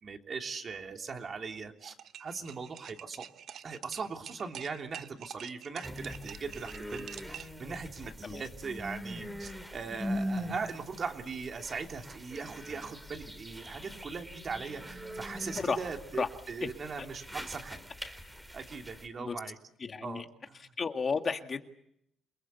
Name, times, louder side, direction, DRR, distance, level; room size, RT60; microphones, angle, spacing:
voice 1, 0.0-3.3 3.6-17.9 18.5-19.5 20.0-20.3, right 5 dB, 45° right, 4 dB, 3.3 m, -40 dB
sound 1, 1.8-7.6, right 10 dB, 70° right, 1.0 m, -47 dB
sound 2, 5.8-19.1, equal, 5° right, 3.8 m, -42 dB
voice 2, 19.8-20.3 20.5-21.7, left 5 dB, 40° left, 6 dB, 2.1 m, -33 dB
28.5 x 20.0 x 8.3 m, 0.74 s
cardioid pair, 90°, 0 cm